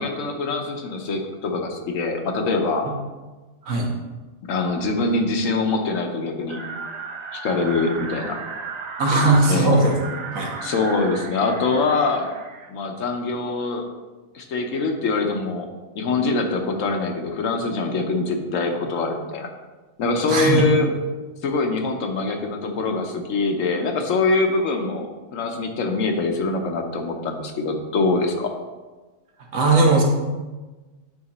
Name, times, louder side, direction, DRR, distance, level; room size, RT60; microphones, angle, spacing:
voice 1, 0.0-2.9 4.5-6.6 7.3-8.4 9.5-9.8 10.6-12.3 12.7-13.8 14.3-15.7 15.9-19.5 20.0-20.9 21.4-28.5, left 3 dB, 80° left, 3 dB, 1.1 m, -24 dB
sound 1, 6.5-12.7, right 5 dB, 55° right, 0.4 m, -35 dB
voice 2, 9.0-10.0 10.3-10.5 20.3-20.7 29.5-30.0, right 2 dB, 85° right, 0 dB, 1.5 m, -18 dB
8.6 x 2.9 x 4.1 m, 1.2 s
omnidirectional pair, 1.4 m